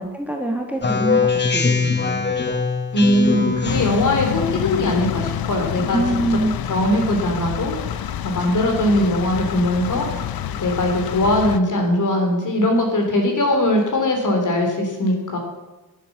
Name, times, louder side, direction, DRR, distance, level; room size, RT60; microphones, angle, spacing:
voice 1, 0.0-2.0 5.9-6.6, right 1 dB, 5° right, 1 dB, 1.6 m, -24 dB
Speech synthesizer, 0.8-4.1, left 4 dB, 30° left, 1.0 m, -21 dB
voice 2, 2.9-6.0 6.7-10.3 10.6-15.4, left 1 dB, 55° left, 2 dB, 3.2 m, -20 dB
sound 1, 3.6-11.6, left 10 dB, 70° left, 0.6 m, -27 dB
11.0 x 8.4 x 7.2 m, 1.1 s
wide cardioid pair, 115°, 37 cm